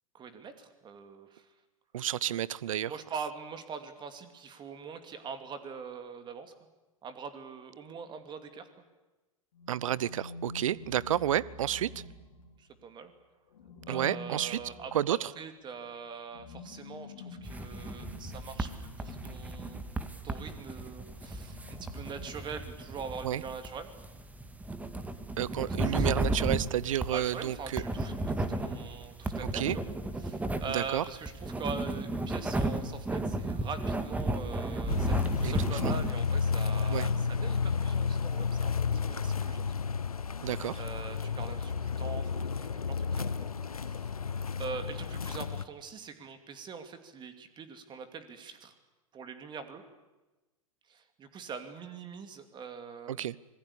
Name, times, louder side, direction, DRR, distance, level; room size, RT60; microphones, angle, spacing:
voice 1, 0.1-1.5 2.9-6.5 7.0-8.7 12.6-13.1 13.9-19.9 20.2-23.9 25.8-26.1 27.1-29.8 30.2-38.7 39.1-39.6 40.8-43.3 43.8-44.1 44.6-48.7 49.1-49.8 50.9-53.3, right 5 dB, 25° right, 9 dB, 2.7 m, -43 dB
voice 2, 1.9-2.9 9.7-11.9 13.9-14.6 14.9-15.3 23.2-23.4 25.4-27.8 29.4-29.8 30.7-31.0 35.4-35.9 36.9-37.1 40.4-40.8 53.1-53.4, right 11 dB, 65° right, 23 dB, 0.8 m, -31 dB
sound 1, 9.5-12.9 13.5-20.1 21.1-23.1, left 2 dB, 65° left, 3.5 m, -48 dB
sound 2, 17.4-36.1, right 2 dB, 10° right, 1.9 m, -34 dB
sound 3, 34.9-45.6, left 5 dB, 80° left, 0.9 m, -31 dB
26.0 x 20.0 x 8.6 m, 1.1 s
figure-of-eight pair, 100°, 19 cm